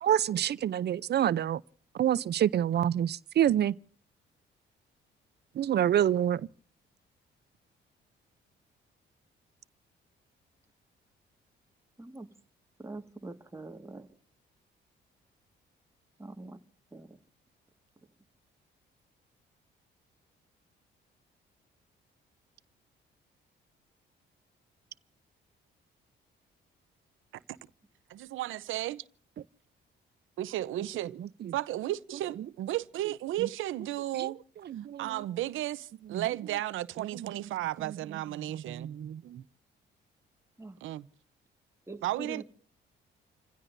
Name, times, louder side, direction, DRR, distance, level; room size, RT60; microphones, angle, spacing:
voice 1, 0.0-1.6 1.9-3.7 5.6-6.4 34.2-34.3 34.7-35.0 36.1-36.2 37.2-37.3 38.5-39.2, right 10 dB, 55° right, 0.6 m, -27 dB
voice 2, 12.8-14.1 16.2-16.6 16.9-17.1 40.6-40.8 41.9-42.4, right 2 dB, 15° right, 1.9 m, -43 dB
voice 3, 28.1-29.0 30.4-31.1 31.5-34.4 35.0-38.9 40.8-41.1 42.0-42.4, right 14 dB, 85° right, 0.9 m, -34 dB
29.5 x 16.0 x 2.7 m
cardioid pair, 90°, 20 cm